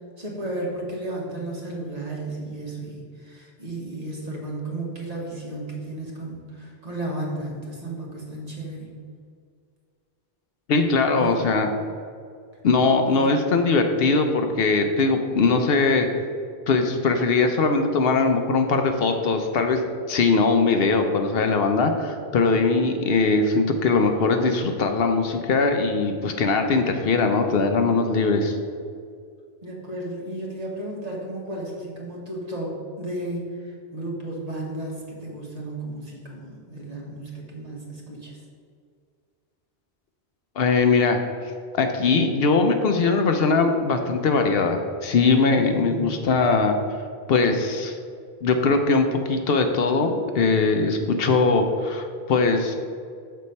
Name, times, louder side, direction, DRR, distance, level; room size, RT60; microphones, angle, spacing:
voice 1, 0.2-9.0 11.2-11.4 13.1-13.4 29.6-38.4 45.5-46.1, right 1 dB, 40° right, -2 dB, 1.3 m, -34 dB
voice 2, 10.7-11.7 12.6-16.1 16.7-28.6 40.6-46.8 47.3-48.0 48.4-52.8, left 4 dB, 70° left, 5 dB, 0.8 m, -21 dB
6.5 x 4.2 x 5.3 m, 2.2 s
omnidirectional pair, 1.1 m